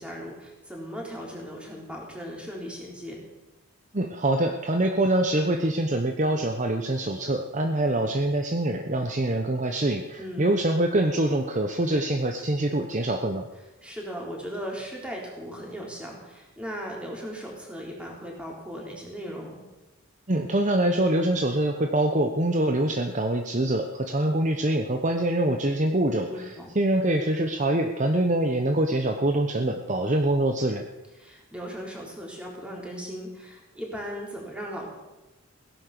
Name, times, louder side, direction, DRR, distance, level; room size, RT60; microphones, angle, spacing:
voice 1, 0.0-3.2 10.2-10.5 13.8-19.6 26.3-26.7 31.2-34.9, equal, 5° right, -2 dB, 3.9 m, -37 dB
voice 2, 3.9-13.5 20.3-26.5 26.7-30.8, right 1 dB, 35° right, 5 dB, 0.9 m, -24 dB
17.5 x 11.0 x 6.8 m, 1.0 s
head